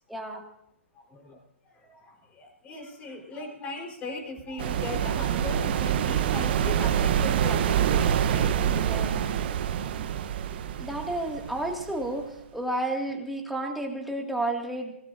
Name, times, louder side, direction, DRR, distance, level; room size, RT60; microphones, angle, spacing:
voice 1, 0.1-0.4 8.7-9.2 10.8-14.9, right 1 dB, ahead, 0 dB, 2.3 m, -31 dB
voice 2, 0.9-1.4 1.6-9.0, left 2 dB, 20° left, 2 dB, 4.4 m, -39 dB
sound 1, 4.6-12.2, right 9 dB, 50° right, 1.0 m, -26 dB
25.5 x 17.0 x 2.7 m, 0.78 s
figure-of-eight pair, 125°, 7 cm